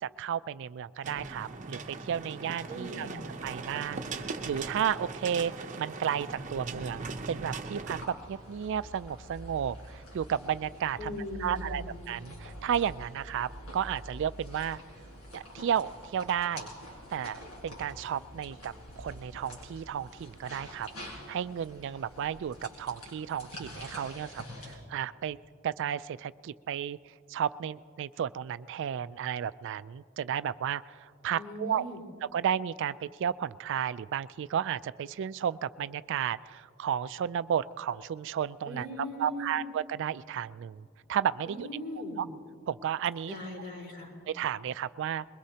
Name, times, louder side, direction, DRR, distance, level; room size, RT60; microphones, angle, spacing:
voice 1, 0.0-3.1 3.4-14.8 15.3-16.7 17.1-20.9 21.3-25.4 25.6-27.0 27.3-31.8 32.3-38.9 39.2-41.7 42.2-42.3 42.7-43.4 44.3-45.3, right 9 dB, 60° right, 16 dB, 0.3 m, -33 dB
sound 1, 1.0-8.0, right 3 dB, 35° right, 0.7 m, -39 dB
voice 2, 2.7-3.2 11.0-11.9 31.3-32.0 38.6-39.6 41.4-42.3 43.3-44.1, left 1 dB, 55° left, -3 dB, 4.3 m, -39 dB
sound 2, 7.9-24.7, equal, 85° left, 4.8 m, -46 dB
22.5 x 22.0 x 2.9 m, 2.2 s
head